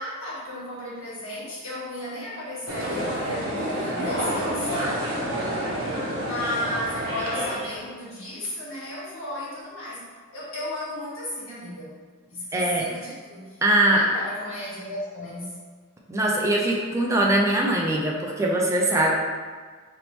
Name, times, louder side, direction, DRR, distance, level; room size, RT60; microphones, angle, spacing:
voice 1, 0.0-5.0 6.2-10.0 10.3-15.6, left 1 dB, 80° left, -8 dB, 1.5 m, -34 dB
sound 1, 2.7-7.9, equal, 90° right, 0.9 m, -29 dB
voice 2, 12.5-12.9 13.6-14.0 16.1-19.1, right 1 dB, 15° right, -2 dB, 0.4 m, -22 dB
4.0 x 3.5 x 2.9 m, 1.5 s
head